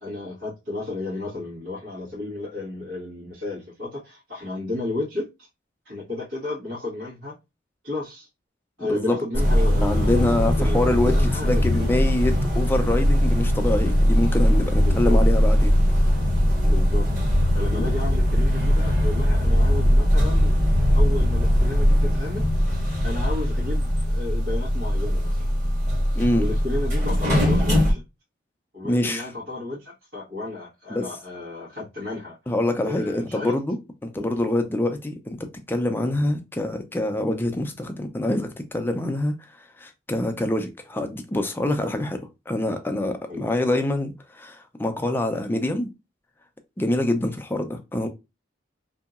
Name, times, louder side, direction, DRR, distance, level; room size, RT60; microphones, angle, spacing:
voice 1, 0.0-5.3 5.8-7.3 7.8-8.3 8.8-12.0 14.8-15.2 16.6-17.1 17.5-20.5 20.9-22.5 23.0-25.5 26.4-28.0 28.7-32.4 32.8-33.6 34.2-34.3 43.3-43.5, left 2 dB, 85° right, 1.5 m, -33 dB
voice 2, 8.8-9.2 9.8-15.7 17.7-17.9 26.2-26.5 28.8-29.3 30.9-31.1 32.5-33.8 34.0-35.4 35.7-39.3 39.8-45.9 46.8-48.1, left 1 dB, 10° left, 0.4 m, -25 dB
sound 1, 9.3-27.9, equal, 35° right, 1.6 m, -20 dB
2.8 x 2.7 x 2.3 m
head